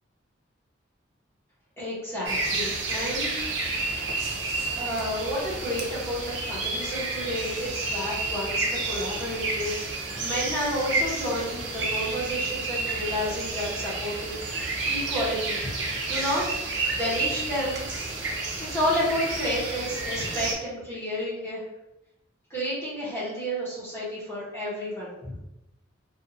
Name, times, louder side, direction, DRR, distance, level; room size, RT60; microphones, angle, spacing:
voice 1, 1.8-3.5 4.7-18.0 18.6-21.6 22.5-25.3, equal, 15° left, -8 dB, 1.0 m, -31 dB
sound 1, 2.2-20.5, right 3 dB, 65° right, 0.6 m, -30 dB
2.7 x 2.4 x 2.7 m, 0.89 s
head